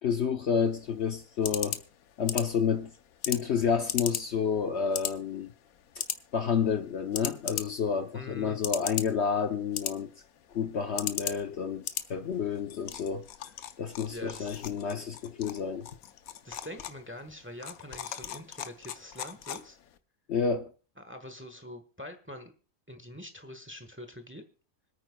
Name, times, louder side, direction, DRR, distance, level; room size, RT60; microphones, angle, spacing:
voice 1, 0.0-1.8 2.2-2.9 3.3-5.5 6.3-10.1 10.5-13.2 13.8-15.9 20.3-20.7, left 6 dB, 60° left, 1.0 m, -29 dB
sound 1, 0.6-20.0, left 10 dB, 85° left, 1.2 m, -39 dB
voice 2, 8.1-8.6 14.0-14.6 16.4-19.8 21.0-22.5 22.9-24.4, left 1 dB, 10° right, 1.1 m, -44 dB
25.5 x 8.9 x 2.3 m
omnidirectional pair, 1.5 m